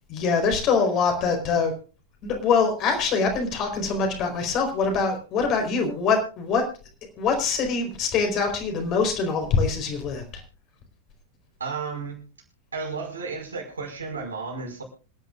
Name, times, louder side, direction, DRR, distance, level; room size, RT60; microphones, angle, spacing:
voice 1, 0.1-1.7 2.2-6.6 7.2-10.2, left 5 dB, 35° left, 3 dB, 4.4 m, -24 dB
voice 2, 11.6-12.2 12.7-14.8, right 4 dB, 75° right, 1 dB, 5.3 m, -33 dB
26.5 x 11.0 x 2.5 m, 0.35 s
figure-of-eight pair, 90°, 0 cm